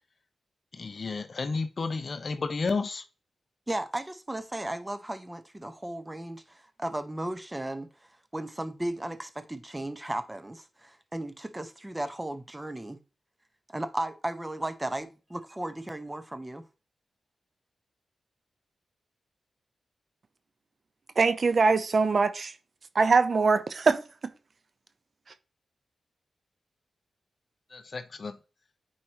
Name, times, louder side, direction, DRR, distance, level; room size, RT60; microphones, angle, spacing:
voice 1, 0.7-3.0 27.7-28.4, left 4 dB, 55° left, 0.9 m, -32 dB
voice 2, 3.7-7.9 8.3-13.0 13.7-16.7, right 1 dB, 15° right, 1.2 m, -35 dB
voice 3, 21.2-22.5 22.9-24.0, right 4 dB, 55° right, 0.8 m, -22 dB
9.6 x 4.7 x 3.0 m
cardioid pair, 60°, 0 cm